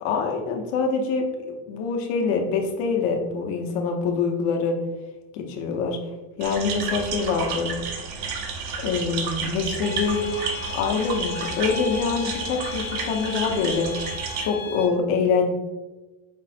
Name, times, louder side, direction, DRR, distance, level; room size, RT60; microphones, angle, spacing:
voice 1, 0.0-1.2 1.7-4.8 5.3-6.0 6.4-7.7 8.8-10.3 10.7-14.0 14.4-15.5, left 5 dB, 70° left, 3 dB, 0.9 m, -25 dB
sound 1, 6.4-14.4, right 5 dB, 65° right, 0.8 m, -31 dB
sound 2, 9.8-14.8, left 7 dB, 5° left, 0.4 m, -35 dB
5.2 x 2.1 x 4.1 m, 1.1 s
cardioid pair, 165°, 43 cm